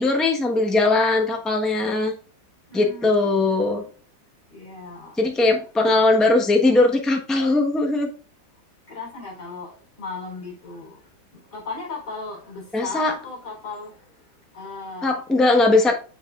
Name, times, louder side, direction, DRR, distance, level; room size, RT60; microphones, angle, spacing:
voice 1, 0.0-2.1 2.7-3.8 5.2-8.1 12.7-13.1 15.0-15.9, left 2 dB, ahead, 0.8 m, -19 dB
voice 2, 2.7-3.9 4.5-5.2 8.9-11.0 11.3-14.1 14.5-15.2 15.5-15.7, left 3 dB, 55° left, 4.5 m, -36 dB
7.2 x 7.0 x 2.4 m
omnidirectional pair, 2.0 m